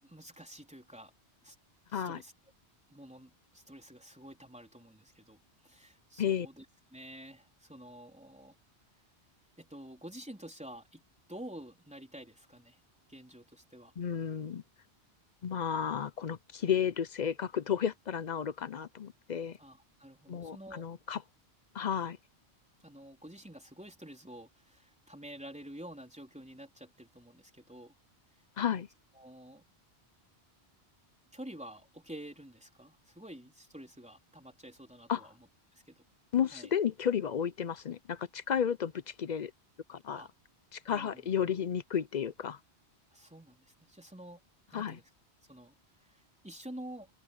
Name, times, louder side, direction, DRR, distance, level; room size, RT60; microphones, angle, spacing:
voice 1, 0.0-1.1 1.4-1.6 1.9-2.3 2.9-6.7 6.9-8.6 9.6-11.0 11.3-12.8 13.1-13.9 19.6-20.8 22.8-27.9 29.1-29.7 31.3-35.3 35.7-36.0 36.5-36.7 40.1-40.3 40.9-41.3 43.1-44.4 44.7-45.1 45.5-45.8 46.1-47.1, right 1 dB, 5° right, 3.9 m, -49 dB
voice 2, 14.0-14.6 15.4-19.6 20.3-21.2 21.7-22.2 28.6-28.9 35.1-35.2 36.3-39.5 39.9-40.2 40.7-42.6 44.7-45.0, left 8 dB, 50° left, 0.6 m, -32 dB
open air
omnidirectional pair, 1.1 m